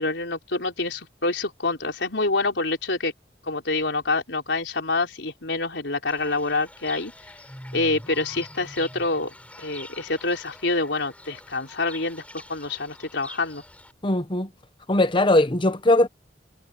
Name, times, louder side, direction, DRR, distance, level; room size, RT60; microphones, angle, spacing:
voice 1, 0.0-3.1 3.5-7.1 7.7-12.2 12.5-13.6, left 3 dB, 85° left, 4.1 m, -26 dB
Fowl / Bird, 6.1-13.9, left 1 dB, 10° left, 8.0 m, -44 dB
voice 2, 14.0-14.5 14.9-16.1, left 1 dB, 30° left, 1.1 m, -20 dB
head